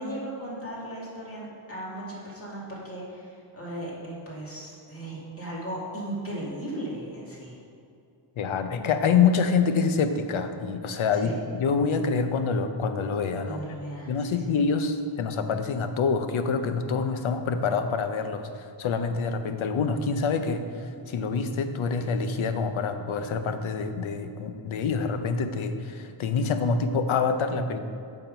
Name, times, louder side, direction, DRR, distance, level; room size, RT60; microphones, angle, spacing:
voice 1, 0.0-7.6 11.1-11.3 13.4-14.4, right 1 dB, 25° left, -5 dB, 2.3 m, -36 dB
voice 2, 8.4-13.6 14.1-27.8, left 5 dB, 70° left, 8 dB, 0.8 m, -26 dB
9.0 x 6.0 x 5.3 m, 2.5 s
wide cardioid pair, 155°, 50 cm